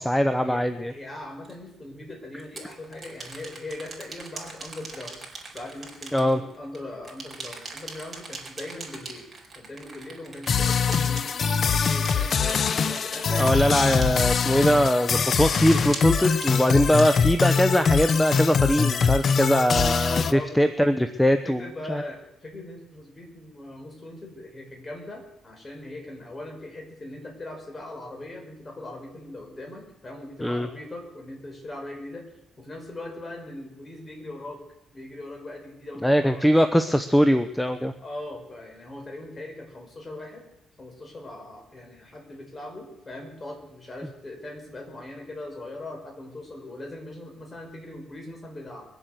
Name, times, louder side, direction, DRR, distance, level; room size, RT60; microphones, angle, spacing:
voice 1, 0.0-0.9 6.1-6.4 13.3-21.6 21.9-22.0 30.4-30.7 36.0-37.9, equal, 5° left, 9 dB, 0.8 m, -21 dB
voice 2, 0.9-5.2 5.5-9.3 9.6-13.7 20.2-20.8 21.0-21.1 21.4-32.3 32.6-34.6 34.9-36.7 38.0-40.4 40.8-48.9, left 1 dB, 30° left, 2 dB, 5.3 m, -40 dB
sound 1, 1.4-1.5 2.4-6.8 7.0-14.9 15.3-17.8, right 3 dB, 30° right, 4.3 m, -40 dB
sound 2, 10.5-20.3, left 6 dB, 50° left, 0.7 m, -23 dB
22.5 x 8.0 x 8.0 m, 0.86 s
cardioid pair, 90°, 0 cm